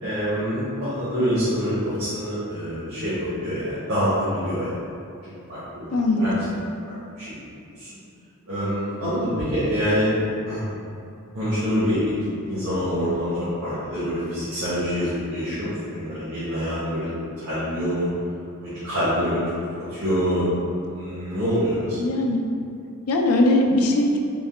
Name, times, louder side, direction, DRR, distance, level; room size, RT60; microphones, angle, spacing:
voice 1, 0.0-4.7 5.5-6.3 6.9-7.3 7.8-7.9 8.5-10.1 10.4-10.7 11.3-17.1 17.4-18.1 18.6-19.4 19.9-22.0, equal, 85° right, -13 dB, 1.3 m, -26 dB
voice 2, 5.9-6.4 22.0-22.4 23.1-24.2, left 1 dB, 85° left, 1 dB, 0.4 m, -20 dB
3.8 x 2.1 x 3.6 m, 2.6 s
head